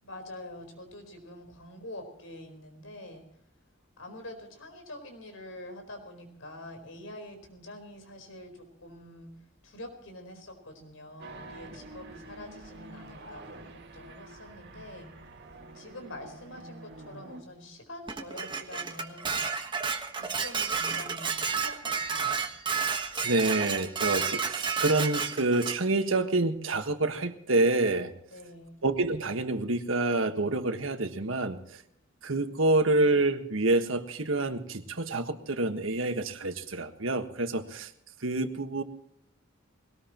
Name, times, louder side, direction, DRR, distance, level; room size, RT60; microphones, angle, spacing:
voice 1, 0.0-3.3 4.0-9.4 9.6-15.1 15.7-19.5 20.2-22.5 28.3-28.8, left 1 dB, 85° left, 5 dB, 4.4 m, -45 dB
sound 1, 11.2-17.4, right 2 dB, 55° right, 2.1 m, -47 dB
Dishes pots and pans, 18.1-25.8, right 5 dB, 25° right, 1.3 m, -31 dB
voice 2, 23.2-28.1 28.8-31.8 32.2-37.9 38.2-38.8, right 2 dB, 80° right, 7 dB, 1.5 m, -27 dB
20.5 x 18.5 x 3.0 m, 0.67 s
head